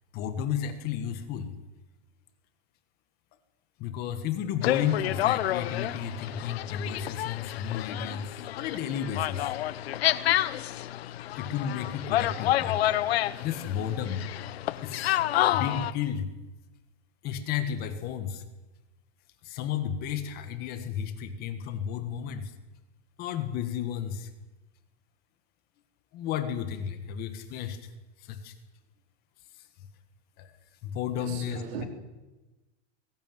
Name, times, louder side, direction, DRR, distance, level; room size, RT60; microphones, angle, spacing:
voice 1, 0.1-1.5 3.8-9.5 11.4-12.9 13.4-14.2 14.8-15.1 15.5-16.3 17.2-18.4 19.4-22.5 23.2-24.3 26.1-27.9 28.2-28.5 30.4-30.5 30.8-31.9, left 9 dB, 30° left, 1.7 m, -33 dB
sound 1, 4.6-15.9, left 13 dB, 65° left, 1.1 m, -29 dB
voice 2, 31.1-31.9, right 6 dB, 65° right, 4.4 m, -37 dB
21.0 x 15.5 x 9.3 m
supercardioid pair, 165°, 34 cm